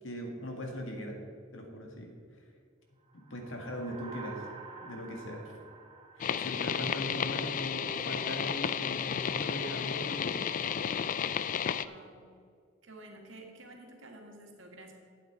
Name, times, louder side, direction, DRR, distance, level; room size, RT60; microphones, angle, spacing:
voice 1, 0.0-1.2 1.5-2.1 3.1-4.5 4.8-5.5 6.2-10.4, equal, 80° left, 2 dB, 1.9 m, -39 dB
sound 1, 3.1-7.7, right 4 dB, 30° right, 0.8 m, -50 dB
sound 2, 6.2-11.8, left 8 dB, 45° left, 0.3 m, -32 dB
voice 2, 11.8-12.2 12.8-14.9, right 1 dB, 75° right, 1 dB, 1.8 m, -50 dB
12.0 x 8.6 x 4.7 m, 2.2 s
head